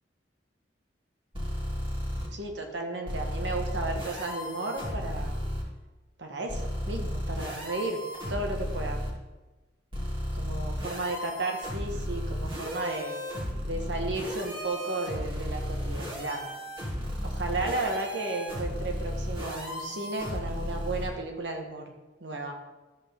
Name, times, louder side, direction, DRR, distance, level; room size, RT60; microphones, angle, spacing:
sound 1, 1.3-2.3 3.1-5.6 6.5-9.1 9.9-21.1, equal, 30° right, 1.8 m, -34 dB
voice 1, 2.3-5.4 6.2-8.0 8.3-9.0 10.3-13.2 13.7-16.4 17.2-21.8 22.2-22.6, right 2 dB, 80° right, 2 dB, 1.4 m, -34 dB
13.0 x 6.0 x 3.6 m, 1.2 s
head